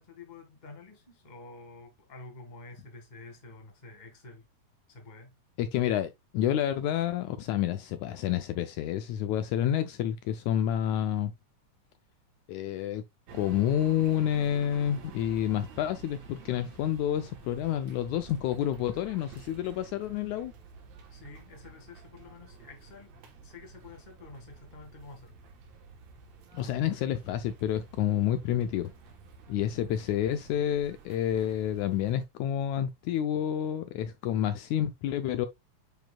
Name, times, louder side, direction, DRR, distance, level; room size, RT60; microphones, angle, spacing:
voice 1, 0.0-4.4 4.9-5.3 21.1-23.1 23.4-25.5 29.7-29.9, left 3 dB, 20° left, 1.4 m, -49 dB
voice 2, 5.6-11.3 12.5-13.0 13.3-20.5 26.5-28.9 29.5-35.5, left 11 dB, 80° left, 1.8 m, -29 dB
sound 1, 13.3-32.3, right 5 dB, 65° right, 2.3 m, -50 dB
9.1 x 5.2 x 2.3 m
omnidirectional pair, 3.6 m